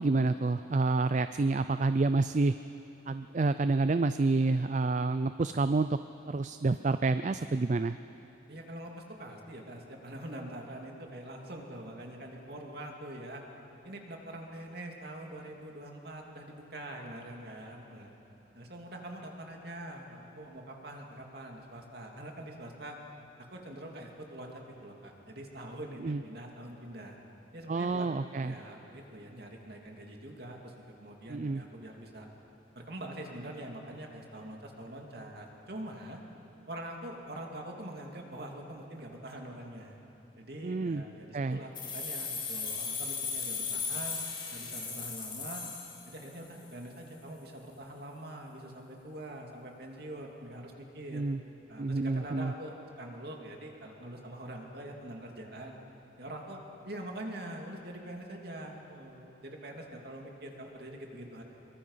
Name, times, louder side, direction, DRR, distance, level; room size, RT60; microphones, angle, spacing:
voice 1, 0.0-2.6 3.1-6.0 6.3-8.0 26.0-26.2 27.7-28.6 31.3-31.6 40.6-41.0 41.3-41.6 51.1-51.4 51.8-52.5, right 3 dB, 40° right, 11 dB, 0.4 m, -28 dB
voice 2, 8.5-13.4 13.8-18.2 18.5-23.0 23.5-27.2 27.5-28.1 28.4-30.7 31.0-32.3 32.7-36.2 36.7-40.0 40.4-44.2 44.5-45.6 46.1-51.2 51.7-55.8 56.2-61.4, right 1 dB, 55° right, 1 dB, 2.6 m, -44 dB
sound 1, 41.7-46.5, left 5 dB, 25° left, 3.9 m, -37 dB
25.5 x 23.0 x 5.7 m, 2.9 s
head